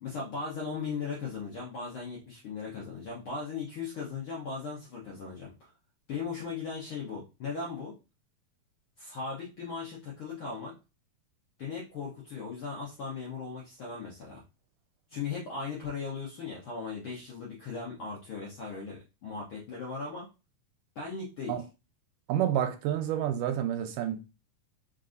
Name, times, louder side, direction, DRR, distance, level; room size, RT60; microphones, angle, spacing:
voice 1, 0.0-5.7 6.1-7.9 9.0-10.7 11.6-14.4 15.1-20.3 20.9-21.6, left 5 dB, 75° left, 1.2 m, -38 dB
voice 2, 22.3-24.2, right 10 dB, 90° right, 2.2 m, -29 dB
4.6 x 3.8 x 2.6 m
omnidirectional pair, 3.7 m